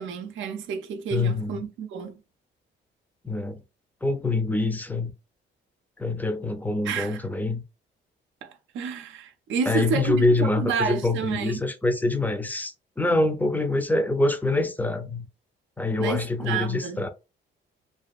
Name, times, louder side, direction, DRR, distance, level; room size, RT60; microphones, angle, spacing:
voice 1, 0.0-2.2 6.8-7.2 8.4-11.6 16.0-17.0, right 6 dB, 80° right, 0.5 m, -30 dB
voice 2, 1.1-1.6 3.2-3.6 4.0-5.1 6.0-7.6 9.7-15.3 15.8-17.1, left 2 dB, 10° left, 0.4 m, -25 dB
2.6 x 2.4 x 2.3 m
cardioid pair, 90°, 20 cm